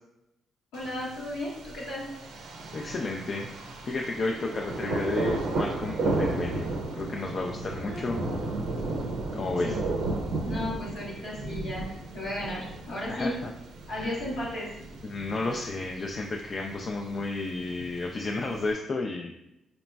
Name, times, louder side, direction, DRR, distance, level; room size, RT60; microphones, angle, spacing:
voice 1, 0.7-2.1 7.9-8.6 9.6-9.8 10.5-11.9 12.1-13.3 13.9-14.7, left 1 dB, 85° left, -9 dB, 0.9 m, -35 dB
Thunder, 0.7-18.7, right 2 dB, 75° right, 0.5 m, -34 dB
voice 2, 2.7-3.5 3.8-6.7 7.0-8.2 9.3-9.8 13.1-13.5 13.9-14.1 15.0-19.3, left 3 dB, 50° left, 1 dB, 0.3 m, -32 dB
4.1 x 2.9 x 2.2 m, 0.88 s
supercardioid pair, 50°, 0 cm